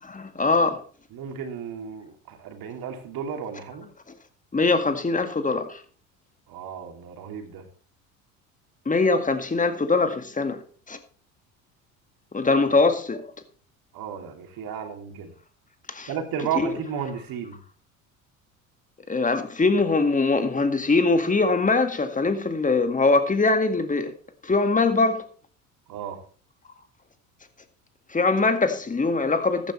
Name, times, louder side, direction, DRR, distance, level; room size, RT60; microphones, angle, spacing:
voice 1, 0.1-0.8 4.5-5.8 8.9-10.6 10.9-11.0 12.3-13.3 15.9-16.1 16.6-16.7 19.1-24.1 24.4-25.2 28.1-29.7, left 3 dB, 20° left, 2.0 m, -22 dB
voice 2, 1.1-3.9 6.5-7.6 13.9-15.3 16.1-17.6 25.9-26.2, right 8 dB, 55° right, 3.0 m, -33 dB
14.0 x 10.5 x 3.3 m
hypercardioid pair, 65°, 42 cm